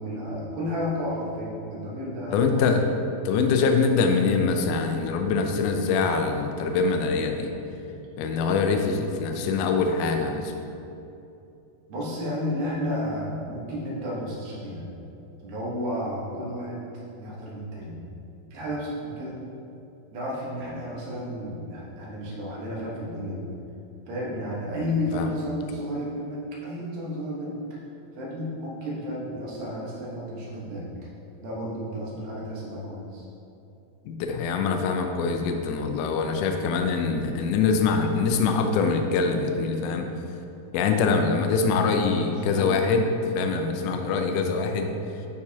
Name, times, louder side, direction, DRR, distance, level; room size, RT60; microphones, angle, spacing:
voice 1, 0.0-2.8 11.9-14.9 15.4-16.9 17.2-18.0 18.5-19.4 20.1-23.5 24.1-27.8 28.2-31.1 31.4-33.3 41.7-42.7, equal, 75° right, -5 dB, 3.1 m, -32 dB
voice 2, 2.3-2.8 3.2-7.5 8.2-10.5 24.8-25.3 34.0-40.0 40.7-44.9, left 4 dB, 85° left, 4 dB, 1.8 m, -24 dB
11.0 x 4.7 x 2.8 m, 2.8 s
omnidirectional pair, 4.3 m